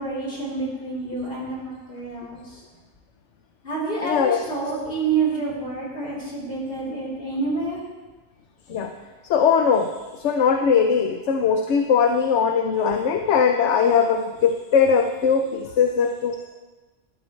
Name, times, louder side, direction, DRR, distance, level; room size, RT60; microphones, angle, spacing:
voice 1, 0.0-2.6 3.6-7.8, right 4 dB, 55° left, -7 dB, 4.1 m, -28 dB
voice 2, 4.0-4.4 8.7-9.0 9.2-16.5, left 6 dB, 80° left, 6 dB, 1.0 m, -20 dB
14.0 x 11.5 x 3.2 m, 1.2 s
omnidirectional pair, 1.2 m